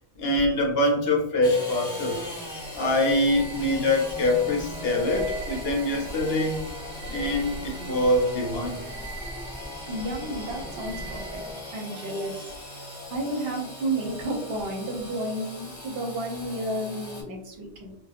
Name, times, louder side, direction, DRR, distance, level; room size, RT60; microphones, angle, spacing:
voice 1, 0.2-2.2 2.7-6.7 7.1-8.8, left 1 dB, 65° left, 0 dB, 0.8 m, -24 dB
Engine / Sawing, 1.4-17.2, left 1 dB, 30° left, 1.0 m, -40 dB
sound 1, 2.0-11.8, right 1 dB, 5° left, 0.6 m, -39 dB
voice 2, 9.9-11.4 11.7-12.5 12.7-12.8 13.1-17.9, right 1 dB, 60° right, 0 dB, 0.8 m, -32 dB
2.6 x 2.2 x 2.4 m, 0.75 s
omnidirectional pair, 1.2 m